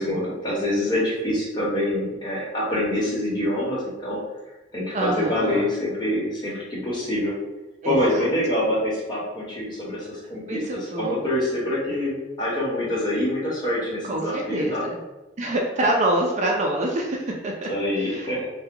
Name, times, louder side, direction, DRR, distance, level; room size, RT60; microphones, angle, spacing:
voice 1, 0.0-4.2 4.7-7.3 7.8-10.6 11.0-14.8 17.7-18.4, left 1 dB, 25° left, -6 dB, 1.1 m, -25 dB
voice 2, 4.9-5.7 7.8-8.3 10.5-11.2 14.0-15.0 15.4-18.3, right 1 dB, 40° right, 0 dB, 0.4 m, -26 dB
2.8 x 2.2 x 3.6 m, 1.1 s
head